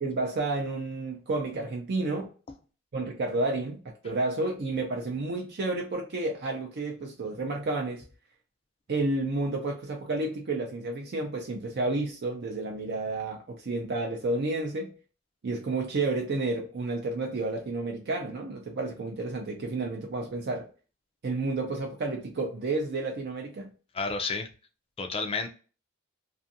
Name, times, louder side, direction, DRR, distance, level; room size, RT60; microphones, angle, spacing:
voice 1, 0.0-2.3 2.9-8.0 8.9-14.9 15.4-20.7 21.2-23.7, right 2 dB, 55° right, 0.5 m, -31 dB
voice 2, 23.9-24.5 25.0-25.5, left 4 dB, 30° left, 0.4 m, -30 dB
2.5 x 2.5 x 2.6 m
head